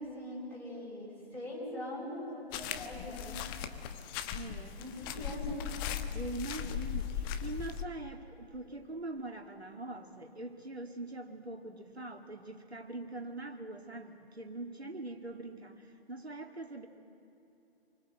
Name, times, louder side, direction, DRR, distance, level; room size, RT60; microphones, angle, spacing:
voice 1, 0.0-3.4 4.8-5.6, left 1 dB, 5° left, -6 dB, 7.0 m, -42 dB
sound 1, 2.5-7.8, left 9 dB, 20° left, 1.1 m, -38 dB
voice 2, 4.3-5.3 6.1-16.9, right 2 dB, 85° right, 4 dB, 2.4 m, -43 dB
28.0 x 25.0 x 7.8 m, 2.9 s
figure-of-eight pair, 130°, 31 cm